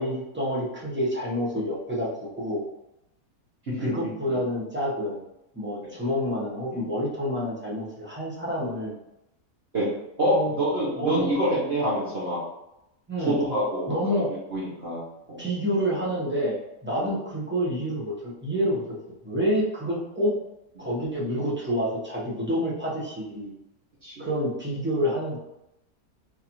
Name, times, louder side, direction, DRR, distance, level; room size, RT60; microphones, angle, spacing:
voice 1, 0.0-2.6 3.8-5.2 5.5-8.9 10.3-10.6 10.9-11.4 13.1-13.4 13.9-14.3 15.4-19.0 19.2-20.4 20.8-23.5 24.2-25.4, equal, 10° right, -6 dB, 0.6 m, -28 dB
voice 2, 10.2-12.4 13.2-13.8 14.1-14.2 14.5-15.0 15.3-15.4 17.0-17.1 20.8-20.9 24.0-24.3, right 1 dB, 45° right, -9 dB, 1.2 m, -26 dB
4.0 x 2.6 x 2.9 m, 0.87 s
omnidirectional pair, 1.6 m